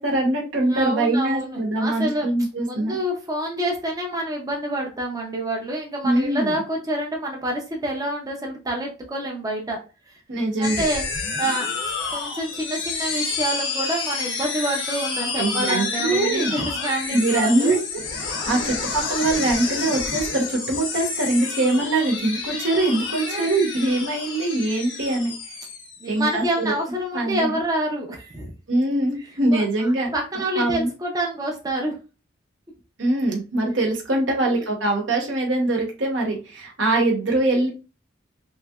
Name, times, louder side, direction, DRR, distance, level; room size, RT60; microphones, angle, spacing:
voice 1, 0.0-3.0 6.0-6.6 10.3-10.8 15.4-16.5 17.1-17.8 18.2-25.3 26.1-26.8 27.1-27.5 28.7-30.9 33.0-37.7, right 2 dB, 70° right, 0 dB, 0.9 m, -23 dB
voice 2, 0.6-2.3 2.6-9.8 10.1-10.2 10.6-11.0 11.4-11.7 12.1-17.8 18.5-18.8 23.3-23.5 26.0-28.5 29.5-31.9 34.4-34.6, right 1 dB, 20° right, 0 dB, 0.5 m, -27 dB
sound 1, 10.6-26.4, left 4 dB, 80° left, 0.9 m, -29 dB
3.1 x 2.8 x 2.3 m, 0.33 s
head